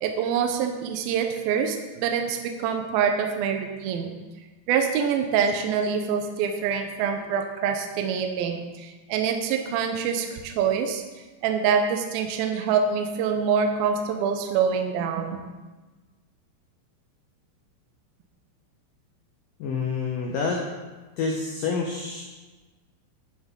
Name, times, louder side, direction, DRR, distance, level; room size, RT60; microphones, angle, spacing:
voice 1, 0.0-4.1 4.7-11.0 11.4-15.5, right 7 dB, 80° right, 4 dB, 2.2 m, -25 dB
voice 2, 19.6-20.6 21.2-22.2, left 4 dB, 85° left, 0 dB, 1.9 m, -27 dB
9.6 x 9.6 x 3.8 m, 1.3 s
omnidirectional pair, 5.2 m